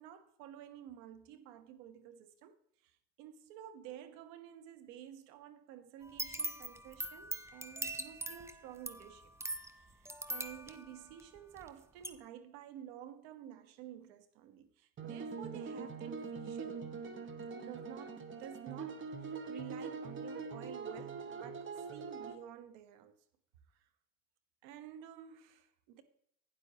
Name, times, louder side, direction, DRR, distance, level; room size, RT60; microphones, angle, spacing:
voice 1, 0.0-2.5 2.8-9.3 9.7-16.9 17.5-23.1 23.8-23.9 24.6-26.0, right 10 dB, 75° right, 1.2 m, -51 dB
sound 1, 6.0-11.7 12.0-12.1, right 2 dB, 10° right, 0.7 m, -41 dB
sound 2, 15.0-22.4, right 5 dB, 35° right, 1.3 m, -43 dB
12.0 x 9.4 x 2.9 m
supercardioid pair, 85°, 34 cm